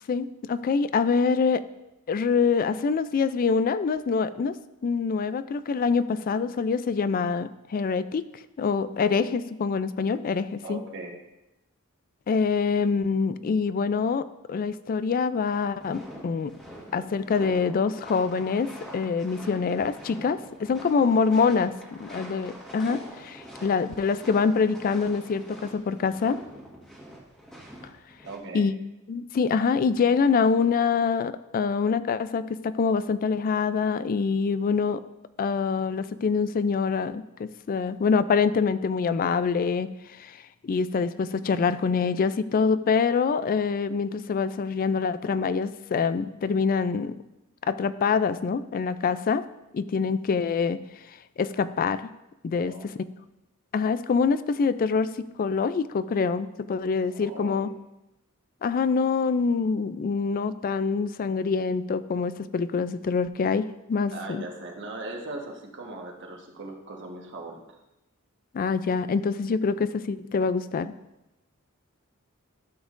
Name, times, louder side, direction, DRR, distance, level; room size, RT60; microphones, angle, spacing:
voice 1, 0.1-1.6 2.1-4.6 4.8-8.3 8.6-10.8 12.3-16.5 16.9-21.7 22.0-26.4 28.5-28.7 29.1-35.0 35.4-39.9 40.2-40.4 40.6-47.2 47.6-49.4 49.7-50.8 51.4-52.1 52.4-52.7 53.7-57.7 58.6-64.4 68.5-70.9, left 5 dB, 40° left, 14 dB, 0.3 m, -25 dB
voice 2, 10.6-11.2 21.0-21.3 28.2-28.7 52.5-52.9 57.1-57.7 64.1-67.8, right 2 dB, 55° right, 1 dB, 1.3 m, -39 dB
sound 1, 15.8-28.4, equal, 5° left, 1.5 m, -44 dB
12.5 x 7.2 x 2.5 m, 0.93 s
head